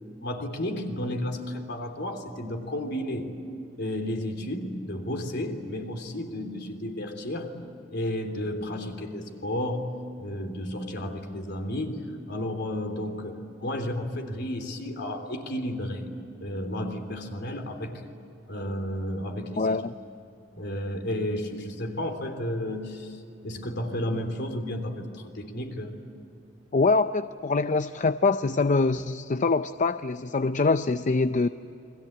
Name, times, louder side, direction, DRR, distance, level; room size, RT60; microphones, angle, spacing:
voice 1, 0.2-3.3 3.8-7.6 7.9-9.9 10.2-16.1 16.4-18.1 18.5-19.8 20.5-25.9, left 1 dB, 60° left, 6 dB, 3.4 m, -32 dB
voice 2, 19.6-19.9 26.7-31.5, left 3 dB, 40° left, 11 dB, 0.5 m, -24 dB
30.0 x 23.0 x 8.8 m, 2.9 s
head